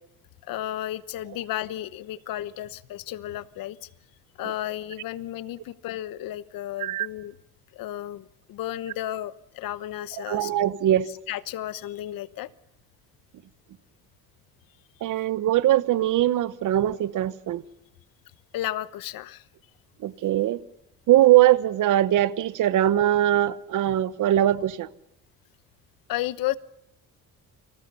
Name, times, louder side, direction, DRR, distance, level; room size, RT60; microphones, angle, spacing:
voice 1, 0.4-3.9 4.4-7.3 7.7-10.5 11.1-12.5 18.5-19.4 26.1-26.5, left 13 dB, 75° left, 1.1 m, -33 dB
voice 2, 10.3-11.1 15.0-17.6 20.0-20.6 21.1-24.9, right 13 dB, 60° right, 1.2 m, -21 dB
29.5 x 27.0 x 5.6 m
cardioid pair, 155°, 34 cm